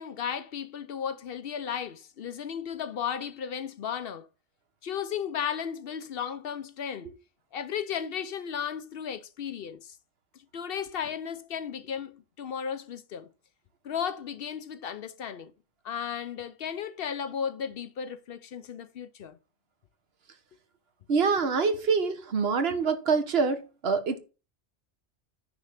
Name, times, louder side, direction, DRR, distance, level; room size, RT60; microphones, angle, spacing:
voice 1, 0.0-4.3 4.8-7.1 7.5-10.0 10.5-13.3 13.8-15.5 15.8-19.4, left 8 dB, 65° left, 0.8 m, -35 dB
voice 2, 21.1-24.2, right 5 dB, 65° right, 1.2 m, -25 dB
9.6 x 3.2 x 6.4 m
omnidirectional pair, 1.1 m